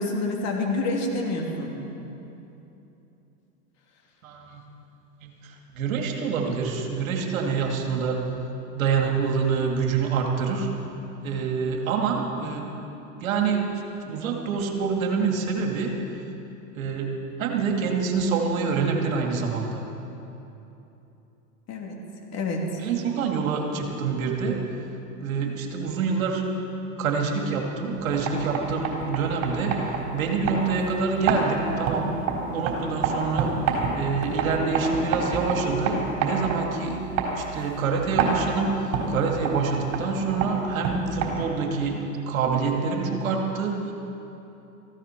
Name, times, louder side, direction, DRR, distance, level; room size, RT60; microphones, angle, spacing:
voice 1, 0.0-1.8 21.7-22.0 22.3-22.6 30.7-30.8, left 2 dB, 40° left, 0 dB, 3.1 m, -28 dB
voice 2, 4.2-4.6 5.2-8.2 8.7-10.7 11.2-12.7 13.2-15.9 16.7-17.1 17.4-19.8 22.8-24.6 25.2-26.4 27.0-29.8 30.1-32.1 32.5-33.5 33.9-37.0 37.3-43.9, right 5 dB, 70° right, 2 dB, 2.3 m, -26 dB
sound 1, 28.0-41.7, right 4 dB, 45° right, 4.3 m, -29 dB
18.5 x 15.5 x 4.5 m, 3.0 s
hypercardioid pair, 105°, 42 cm